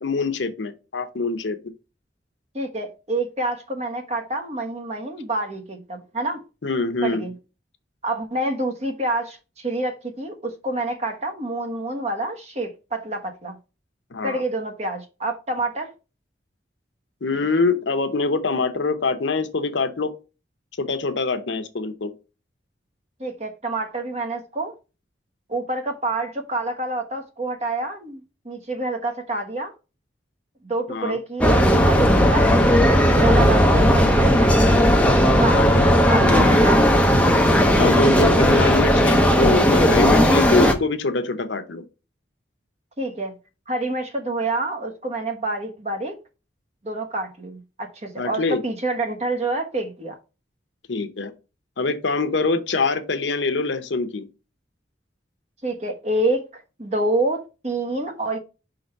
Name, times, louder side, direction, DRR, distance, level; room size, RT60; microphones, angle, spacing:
voice 1, 0.0-1.6 6.6-7.2 14.1-14.4 17.2-20.1 20.8-22.1 30.9-31.2 35.5-35.9 36.2-36.6 37.7-41.8 48.2-48.6 50.9-51.3 51.8-54.3, left 3 dB, 80° left, 0.8 m, -24 dB
voice 2, 2.5-6.4 7.0-7.3 8.0-13.6 14.2-15.9 23.2-24.7 25.5-29.7 30.6-34.9 35.4-36.8 43.0-43.3 43.7-46.2 46.8-50.2 55.6-58.4, right 2 dB, 35° right, 1.2 m, -27 dB
sound 1, 31.4-40.7, equal, 5° left, 0.7 m, -16 dB
5.2 x 3.9 x 5.4 m
head